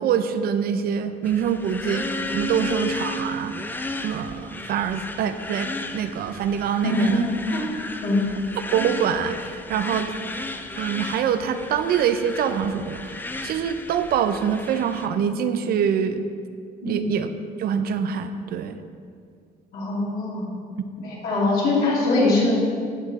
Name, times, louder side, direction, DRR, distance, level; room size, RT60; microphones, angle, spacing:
voice 1, 0.0-7.2 8.6-10.1 10.8-16.2 16.8-17.3 17.6-18.8, right 8 dB, 65° right, 10 dB, 0.6 m, -25 dB
sound 1, 1.2-15.1, left 2 dB, 10° left, 0.5 m, -34 dB
voice 2, 6.8-7.2 7.5-7.6 8.0-8.2 16.8-17.0 19.7-20.4 21.0-22.6, left 2 dB, 65° left, -6 dB, 2.6 m, -22 dB
14.5 x 5.1 x 4.2 m, 2.2 s
cardioid pair, 110°, 17 cm